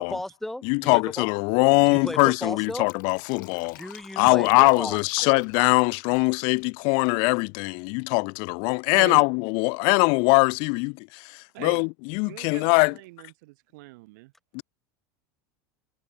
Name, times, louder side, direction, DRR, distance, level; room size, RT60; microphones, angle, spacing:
voice 1, 0.0-1.3 1.9-2.9 3.8-5.4, left 1 dB, 5° left, 1.5 m, -35 dB
voice 2, 0.6-3.8 4.2-12.9 14.5-14.6, left 36 dB, 55° left, 0.3 m, -22 dB
Fill (with liquid), 2.5-7.3 7.5-7.6, left 18 dB, 80° left, 5.2 m, -48 dB
voice 3, 8.9-9.2 11.5-11.8 12.2-14.3, right 23 dB, 70° right, 1.1 m, -40 dB
supercardioid pair, 125°, 10 cm